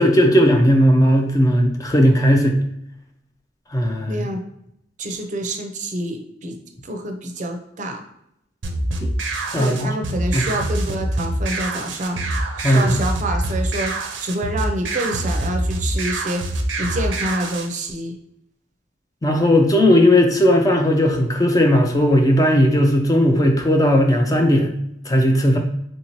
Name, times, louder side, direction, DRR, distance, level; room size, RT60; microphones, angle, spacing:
voice 1, 0.0-2.6 3.7-4.2 9.0-9.1 9.5-9.9 10.3-10.5 12.6-12.9 19.2-24.7 25.1-25.6, equal, 20° left, 3 dB, 0.4 m, -16 dB
voice 2, 4.1-4.4 5.0-6.6 6.8-8.1 9.6-12.2 12.6-13.9 14.2-16.4 16.8-18.1, right 1 dB, 40° right, 4 dB, 0.5 m, -27 dB
sound 1, 8.6-17.7, right 1 dB, 85° right, 0.6 m, -25 dB
3.5 x 2.6 x 2.9 m, 0.78 s
head